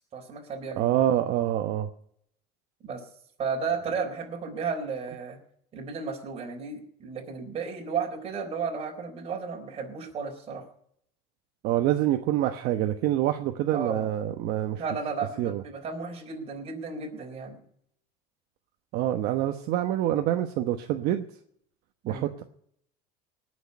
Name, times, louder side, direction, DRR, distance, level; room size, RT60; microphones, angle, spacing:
voice 1, 0.1-0.9 2.8-3.0 3.4-5.4 5.7-10.6 13.7-14.1 14.7-17.6 22.0-22.3, right 5 dB, 35° right, 1 dB, 4.0 m, -33 dB
voice 2, 0.8-1.9 11.6-14.8 15.4-15.6 18.9-21.3 22.1-22.4, right 12 dB, 60° right, 6 dB, 1.1 m, -26 dB
19.0 x 6.5 x 9.7 m, 0.68 s
supercardioid pair, 125°, 18 cm